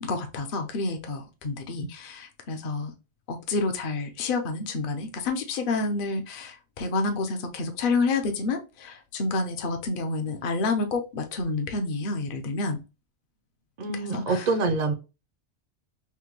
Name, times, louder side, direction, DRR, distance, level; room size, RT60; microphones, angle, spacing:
voice 1, 0.0-2.9 3.3-12.8 14.1-14.4, left 3 dB, 50° left, 0.8 m, -29 dB
voice 2, 13.8-14.9, right 3 dB, 50° right, 0.6 m, -26 dB
5.8 x 2.2 x 3.0 m
omnidirectional pair, 1.2 m